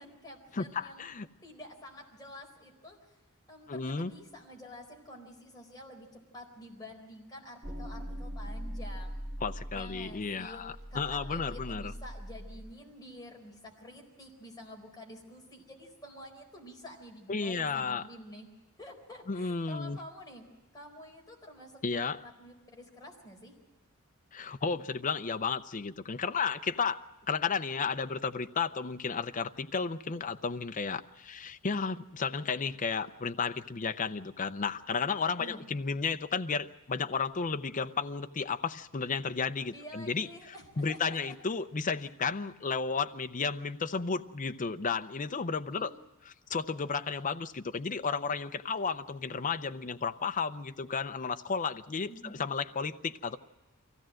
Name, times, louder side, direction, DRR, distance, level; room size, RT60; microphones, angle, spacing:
voice 1, 0.0-1.1 1.4-3.2 3.5-6.1 6.3-9.3 9.7-10.6 10.9-18.5 18.8-20.4 20.7-23.5 35.4-35.6 39.7-41.3 45.7-45.9 52.1-52.3, left 1 dB, 15° left, 0 dB, 4.5 m, -49 dB
voice 2, 0.5-1.3 3.7-4.1 9.4-11.9 17.3-18.0 19.3-20.0 21.8-22.2 24.3-27.0 27.3-40.3 40.8-45.9 46.5-53.4, left 5 dB, 35° left, 9 dB, 0.6 m, -33 dB
sound 1, 7.6-12.7, equal, 30° right, 2.9 m, -41 dB
24.0 x 16.5 x 7.7 m, 1.1 s
head